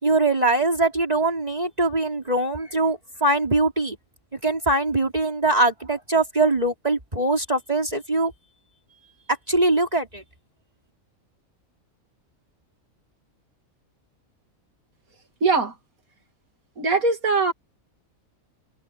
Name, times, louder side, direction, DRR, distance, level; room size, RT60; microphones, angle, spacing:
voice 1, 0.0-4.0 4.3-8.3 9.5-10.2, right 2 dB, 30° right, 3.9 m, -22 dB
voice 2, 15.4-15.8 16.8-17.5, right 4 dB, 85° right, 3.1 m, -21 dB
omnidirectional pair, 1.4 m